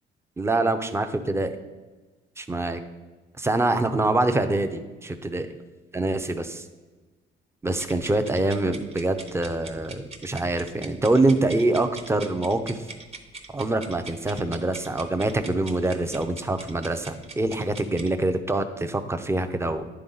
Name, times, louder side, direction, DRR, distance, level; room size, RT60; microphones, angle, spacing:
voice 1, 0.4-1.6 2.4-2.8 3.4-5.5 5.9-6.6 7.6-12.8 13.5-19.9, right 2 dB, 15° right, 8 dB, 0.6 m, -25 dB
sound 1, 7.8-18.1, right 3 dB, 30° right, 0.9 m, -43 dB
10.5 x 3.5 x 3.9 m, 1.3 s
cardioid pair, 90°, 20 cm